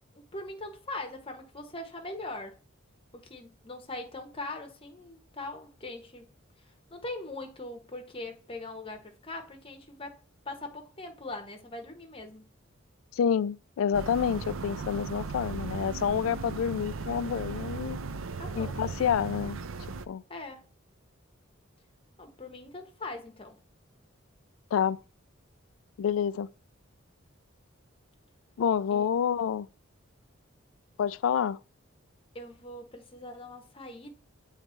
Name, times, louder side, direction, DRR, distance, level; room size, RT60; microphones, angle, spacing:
voice 1, 0.1-2.6 3.1-6.3 6.9-10.2 10.4-12.4 18.4-18.8 20.3-20.6 22.2-23.6 28.9-29.1 32.3-34.2, left 2 dB, 30° left, 1.1 m, -41 dB
voice 2, 13.1-18.0 18.6-19.6 20.1-20.2 24.7-25.0 26.0-26.5 28.6-29.7 31.0-31.6, left 8 dB, 75° left, 0.3 m, -28 dB
sound 1, 13.9-20.1, right 4 dB, 80° right, 0.5 m, -37 dB
7.9 x 3.3 x 4.4 m
head